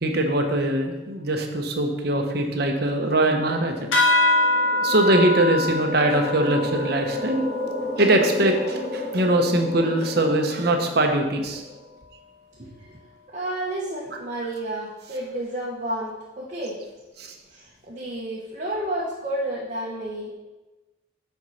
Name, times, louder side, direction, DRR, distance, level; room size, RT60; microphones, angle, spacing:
voice 1, 0.0-3.9 4.8-7.5 8.0-11.6 17.2-17.3, right 1 dB, 55° right, 4 dB, 1.0 m, -22 dB
sound 1, 3.9-8.9, left 2 dB, 85° left, 1.4 m, -25 dB
sound 2, 4.1-11.8, left 2 dB, 5° left, 1.8 m, -32 dB
voice 2, 12.6-13.0 13.3-16.8 17.5-20.3, right 1 dB, 40° right, -6 dB, 1.2 m, -31 dB
7.9 x 4.6 x 5.6 m, 1.1 s
head